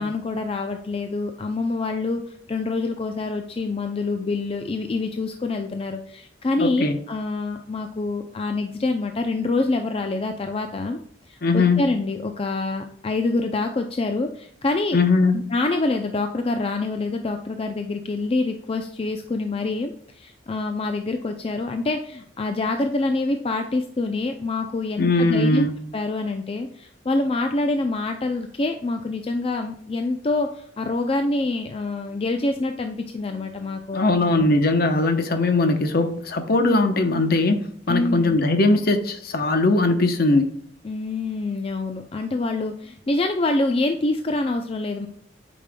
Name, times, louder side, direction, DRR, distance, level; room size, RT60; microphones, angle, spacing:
voice 1, 0.0-11.0 11.3-15.0 15.3-25.7 25.9-34.5 37.9-38.4 40.8-45.1, left 2 dB, 30° left, 5 dB, 0.4 m, -26 dB
voice 2, 6.6-7.0 11.4-11.9 14.9-15.4 25.0-25.7 33.9-40.5, left 2 dB, 50° left, 6 dB, 0.8 m, -20 dB
8.3 x 5.2 x 2.2 m, 0.65 s
head